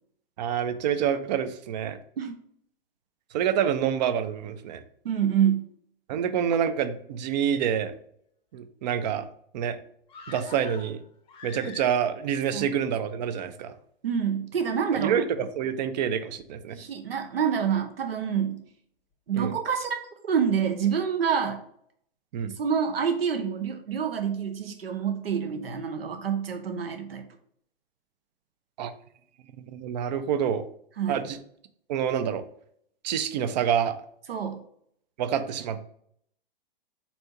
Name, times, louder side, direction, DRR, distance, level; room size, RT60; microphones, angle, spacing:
voice 1, 0.4-2.0 3.3-4.8 6.1-7.9 8.5-9.3 9.5-9.8 10.3-11.0 11.4-13.7 14.9-16.8 19.3-19.5 22.3-22.5 28.8-28.9 29.5-30.6 31.1-31.4 31.9-32.4 33.0-34.0 35.2-35.8, right 8 dB, 50° right, 10 dB, 0.6 m, -27 dB
voice 2, 5.0-5.7 12.5-12.7 14.0-15.2 16.7-18.6 19.3-20.0 20.2-21.6 22.6-27.2 31.0-31.2 34.3-34.6, right 7 dB, 80° right, 6 dB, 0.7 m, -27 dB
sound 1, 10.1-12.3 12.6-12.7, left 5 dB, 20° left, 0.6 m, -45 dB
4.3 x 2.7 x 4.4 m, 0.66 s
hypercardioid pair, 115°, 29 cm